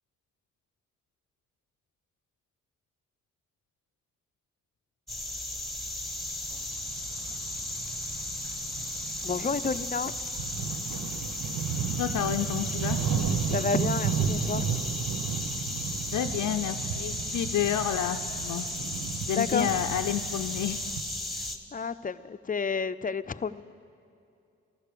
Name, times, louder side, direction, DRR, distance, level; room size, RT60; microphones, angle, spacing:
sound 1, 5.1-21.6, left 1 dB, ahead, 1.7 m, -35 dB
sound 2, 6.7-21.0, right 7 dB, 85° right, 0.8 m, -34 dB
voice 1, 9.2-10.1 13.4-14.6 19.3-19.8 21.7-23.6, left 5 dB, 30° left, 13 dB, 0.5 m, -30 dB
voice 2, 12.0-13.0 16.1-18.6 19.3-20.8, left 10 dB, 80° left, 6 dB, 0.5 m, -30 dB
15.0 x 12.0 x 6.9 m, 2.5 s
supercardioid pair, 45°, 30 cm